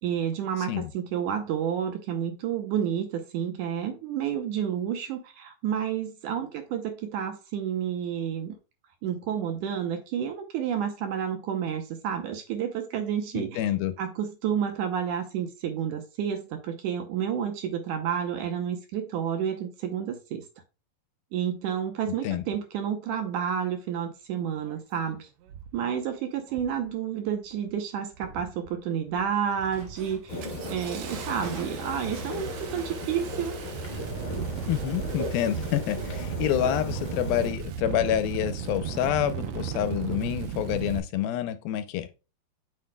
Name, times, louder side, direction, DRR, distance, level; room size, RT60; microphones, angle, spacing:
voice 1, 0.0-8.6 9.0-13.7 14.0-20.4 21.3-25.3 25.7-30.4 30.7-33.6, right 8 dB, 70° right, 2.0 m, -30 dB
voice 2, 13.3-13.9 22.2-22.4 34.7-42.1, left 12 dB, 85° left, 2.5 m, -28 dB
Engine starting, 24.7-24.8 25.5-25.8 26.5-26.8 27.2-27.7 28.1-28.7 29.1-29.3 29.6-41.0, right 8 dB, 90° right, 1.5 m, -36 dB
sound 1, 29.5-35.3, right 3 dB, 45° right, 2.4 m, -46 dB
sound 2, 30.3-37.5, left 1 dB, 30° left, 1.6 m, -37 dB
7.5 x 6.2 x 2.2 m
omnidirectional pair, 4.2 m